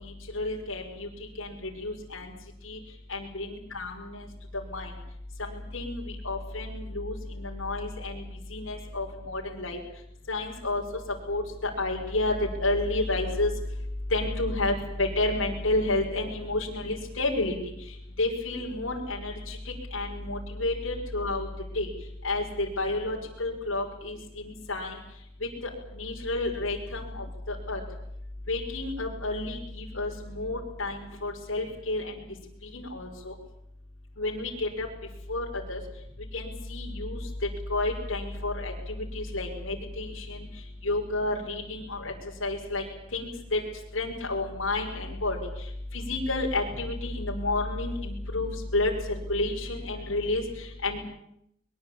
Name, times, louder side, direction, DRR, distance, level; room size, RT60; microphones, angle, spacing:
voice 1, 0.0-5.0 5.4-27.8 28.5-33.4 34.2-51.0, left 2 dB, 70° left, -1 dB, 5.8 m, -31 dB
22.5 x 22.0 x 8.8 m, 0.76 s
head